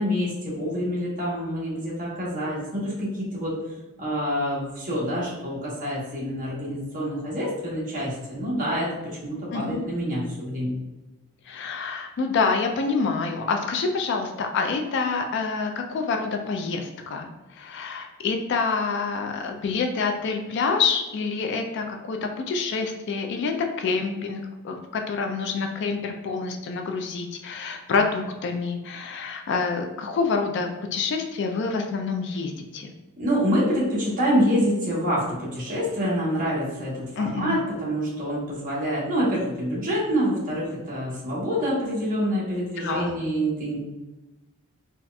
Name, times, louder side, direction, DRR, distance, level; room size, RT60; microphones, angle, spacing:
voice 1, 0.0-3.5 4.0-10.8 33.2-43.8, equal, 40° right, -6 dB, 1.0 m, -26 dB
voice 2, 9.5-9.8 11.5-32.9 37.2-37.6 42.8-43.1, left 4 dB, 55° left, 4 dB, 0.3 m, -27 dB
4.0 x 2.4 x 2.2 m, 1.1 s
head